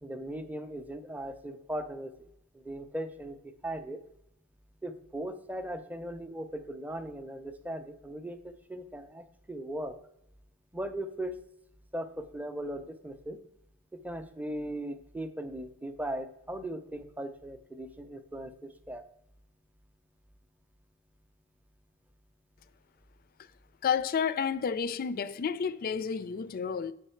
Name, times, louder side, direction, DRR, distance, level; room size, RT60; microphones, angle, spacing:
voice 1, 0.0-2.3 2.5-4.0 4.8-9.9 10.7-11.3 11.9-13.4 13.9-19.0, right 1 dB, 5° right, 0.5 m, -38 dB
voice 2, 23.8-26.9, left 6 dB, 45° left, 0.3 m, -30 dB
7.9 x 5.3 x 4.4 m
head